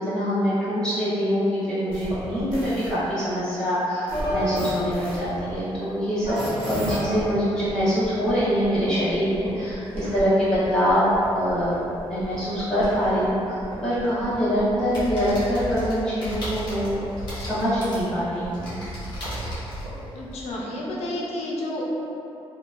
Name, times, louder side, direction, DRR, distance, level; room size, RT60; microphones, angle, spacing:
voice 1, 0.1-6.3 6.6-11.0 11.3-11.7 12.1-13.6 13.8-17.0 17.3-18.8, equal, 5° left, -16 dB, 1.1 m, -24 dB
sound 1, 1.9-2.9 4.1-5.5 6.2-7.2 7.7-10.2 10.5-13.3 13.6-15.7 16.3-18.5 19.1-20.0, equal, 60° right, 1.0 m, -34 dB
voice 2, 14.0-14.3 20.1-21.8, left 1 dB, 90° left, -3 dB, 0.4 m, -31 dB
sound 2, 14.9-20.5, equal, 45° left, 0.9 m, -35 dB
2.9 x 2.1 x 2.3 m, 3.0 s
wide cardioid pair, 170°, 11 cm